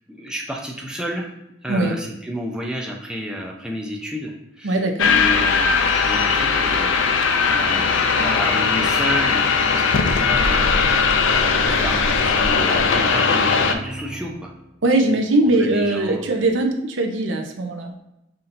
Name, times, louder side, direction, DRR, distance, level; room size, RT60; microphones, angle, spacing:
voice 1, 0.1-1.3 1.6-7.2 7.5-11.1 11.3-14.5 15.6-16.2, equal, 5° right, -1 dB, 0.5 m, -31 dB
voice 2, 4.6-5.1 14.8-17.9, right 2 dB, 70° right, 3 dB, 0.6 m, -20 dB
sound 1, 5.0-13.7, left 5 dB, 70° left, 0.4 m, -19 dB
sound 2, 7.9-14.7, right 2 dB, 30° left, 1.5 m, -38 dB
5.7 x 2.7 x 2.6 m, 0.87 s
head